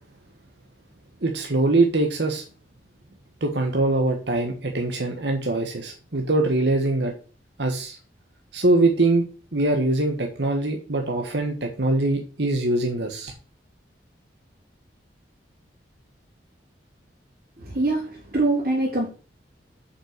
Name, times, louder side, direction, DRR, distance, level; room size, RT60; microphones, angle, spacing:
voice 1, 1.2-2.4 3.4-7.1 7.6-8.0 8.5-9.2 9.5-13.3, right 2 dB, 70° right, 3 dB, 1.4 m, -23 dB
voice 2, 17.6-19.1, right 2 dB, 50° right, -6 dB, 3.3 m, -24 dB
7.3 x 5.7 x 6.6 m, 0.37 s
head